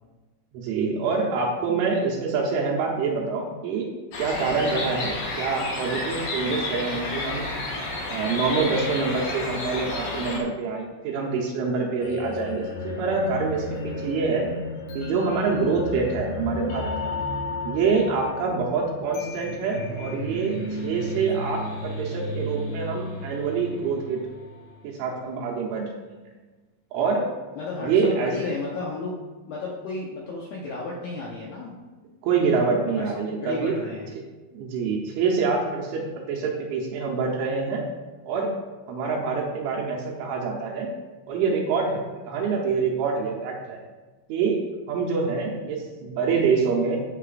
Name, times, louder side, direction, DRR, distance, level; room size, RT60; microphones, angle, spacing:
voice 1, 0.5-3.9 4.2-7.5 8.1-14.5 14.9-17.2 17.6-24.2 24.8-26.2 26.9-27.3 27.8-28.3 32.2-33.8 34.5-37.8 38.3-38.5 38.9-40.9 41.3-43.8 44.3-44.6 44.9-47.0, right 4 dB, 80° right, -1 dB, 3.3 m, -26 dB
sound 1, 4.1-10.4, left 2 dB, 60° left, 2.2 m, -31 dB
sound 2, 12.0-25.0, left 1 dB, 45° left, 3.3 m, -33 dB
voice 2, 27.6-29.2 29.5-31.8 33.0-33.1 33.4-34.1, left 3 dB, 85° left, -3 dB, 2.1 m, -33 dB
14.0 x 6.6 x 2.5 m, 1.3 s
omnidirectional pair, 5.6 m